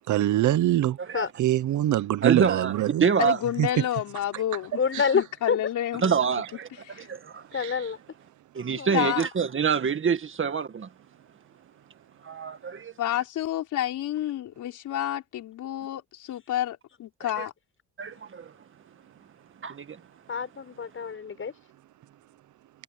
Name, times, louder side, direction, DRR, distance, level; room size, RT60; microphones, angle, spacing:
voice 1, 0.1-1.0 1.4-3.0 3.6-3.7 7.6-7.7, right 13 dB, 75° right, 1.0 m, -23 dB
voice 2, 2.2-3.4 6.0-6.7 7.0-7.4 8.5-10.9 12.2-12.9 18.0-18.5 19.6-20.0, right 6 dB, 40° right, 2.0 m, -26 dB
voice 3, 3.2-4.8 5.1-6.1 6.8-7.1 8.9-9.3 13.0-17.5, left 12 dB, 80° left, 4.7 m, -29 dB
voice 4, 4.7-5.6 7.5-8.0 8.8-9.2 20.3-21.5, left 6 dB, 45° left, 7.4 m, -28 dB
cardioid pair, 90°, 30 cm